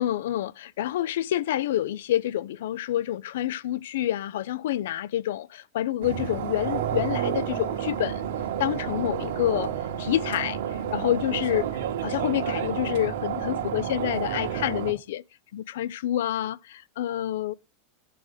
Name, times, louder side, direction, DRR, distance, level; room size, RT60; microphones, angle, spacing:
voice 1, 0.0-8.2 8.6-9.7 10.0-10.6 10.9-11.7 12.0-15.2 15.5-17.5, left 12 dB, 80° left, 0.4 m, -28 dB
sound 1, 6.0-14.9, right 9 dB, 85° right, 1.5 m, -30 dB
8.4 x 5.1 x 4.8 m
supercardioid pair, 155°, 0 cm